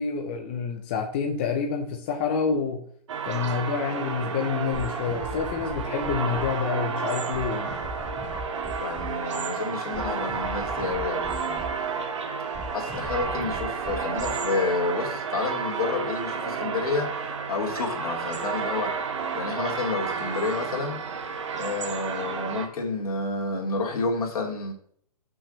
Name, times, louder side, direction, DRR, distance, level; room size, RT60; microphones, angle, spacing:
voice 1, 0.0-2.9 3.2-7.7, left 5 dB, 15° left, 2 dB, 0.5 m, -28 dB
sound 1, 3.1-22.7, right 6 dB, 50° right, 1.2 m, -31 dB
sound 2, 4.7-15.2, right 2 dB, 10° right, 1.3 m, -37 dB
voice 2, 8.8-11.7 12.7-18.9 19.3-21.0 21.5-24.7, left 3 dB, 65° left, 0 dB, 2.4 m, -30 dB
6.2 x 4.8 x 6.5 m, 0.62 s
hypercardioid pair, 170°, 20 cm